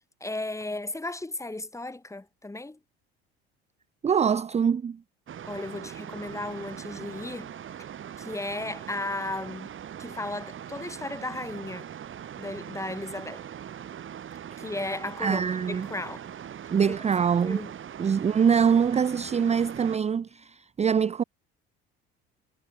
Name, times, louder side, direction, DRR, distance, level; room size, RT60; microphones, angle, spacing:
voice 1, 0.2-2.8 5.5-7.5 8.2-9.7 10.0-11.9 12.4-13.4 14.6-16.3 17.4-17.7, left 2 dB, 10° left, 1.9 m, -35 dB
voice 2, 4.0-5.0 15.2-15.9 16.7-17.6 18.0-21.2, right 7 dB, 20° right, 0.6 m, -24 dB
sound 1, 5.3-20.0, right 9 dB, 40° right, 2.1 m, -41 dB
hypercardioid pair, 70°, 30 cm